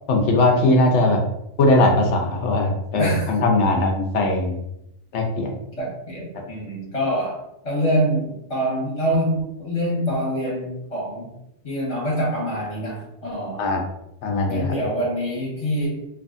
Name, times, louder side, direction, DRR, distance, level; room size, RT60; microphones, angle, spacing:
voice 1, 0.1-1.2 1.6-4.6 5.1-5.6 13.6-13.8 14.2-14.8, left 2 dB, 65° left, 2 dB, 0.8 m, -19 dB
voice 2, 3.0-3.3 5.8-7.4 7.6-11.3 11.6-13.6 14.5-16.0, equal, 30° left, -5 dB, 0.9 m, -25 dB
2.6 x 2.5 x 2.5 m, 0.80 s
omnidirectional pair, 1.4 m